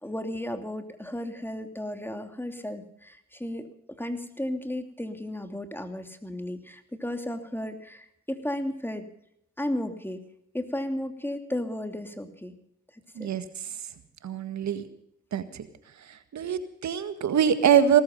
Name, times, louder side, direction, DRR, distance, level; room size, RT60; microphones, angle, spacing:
voice 1, 0.0-9.1 9.6-10.2 10.5-12.5 12.9-13.3, left 1 dB, 5° left, 7 dB, 2.9 m, -34 dB
voice 2, 14.2-14.8 15.3-15.7 16.1-18.0, right 8 dB, 65° right, 10 dB, 1.8 m, -24 dB
18.5 x 14.0 x 5.5 m, 0.73 s
supercardioid pair, 50°, 30 cm